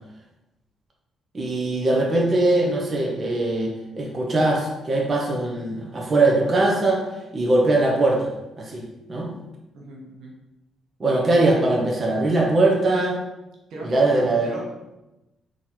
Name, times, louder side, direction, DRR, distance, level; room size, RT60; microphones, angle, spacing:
voice 1, 1.3-7.0 7.3-8.3 8.6-9.3 11.0-13.2 13.8-14.5, right 2 dB, 40° right, -1 dB, 0.9 m, -21 dB
voice 2, 9.7-10.3 13.7-14.7, right 2 dB, 80° right, -2 dB, 1.1 m, -36 dB
3.8 x 3.1 x 4.4 m, 0.98 s
cardioid pair, 90°, 0 cm